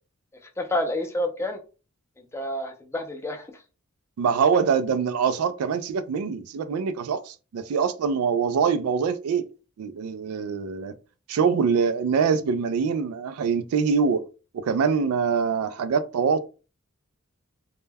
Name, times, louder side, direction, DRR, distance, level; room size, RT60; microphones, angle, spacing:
voice 1, 0.6-1.6 2.3-3.5, left 1 dB, 10° left, 0.4 m, -28 dB
voice 2, 4.2-9.4 9.8-10.9 11.3-14.2 14.5-16.4, right 6 dB, 85° right, 0.3 m, -24 dB
2.2 x 2.1 x 3.2 m
head